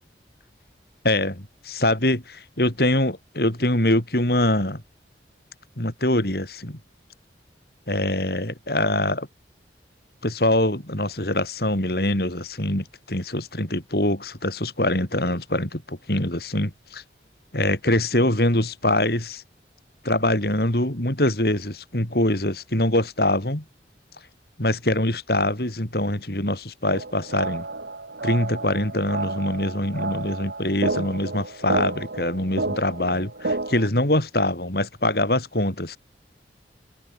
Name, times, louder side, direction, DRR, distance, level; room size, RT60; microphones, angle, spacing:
voice 1, 1.0-4.8 5.8-6.8 7.9-9.3 10.2-17.0 17.5-19.4 20.0-23.6 24.6-27.7 28.2-36.0, left 1 dB, 55° left, 4.1 m, -24 dB
sound 1, 26.9-33.9, right 2 dB, 65° right, 1.8 m, -31 dB
head